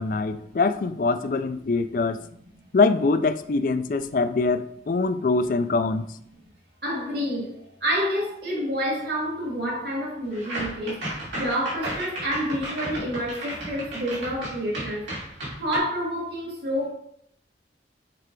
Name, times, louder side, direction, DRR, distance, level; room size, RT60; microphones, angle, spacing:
voice 1, 0.0-2.2 2.7-6.1, left 3 dB, 45° left, 11 dB, 0.4 m, -23 dB
voice 2, 6.8-11.0 11.3-15.1 15.6-16.9, equal, 60° right, -3 dB, 2.0 m, -28 dB
sound 1, 10.3-15.8, right 1 dB, 85° right, 2.6 m, -34 dB
6.9 x 3.3 x 4.6 m, 0.71 s
head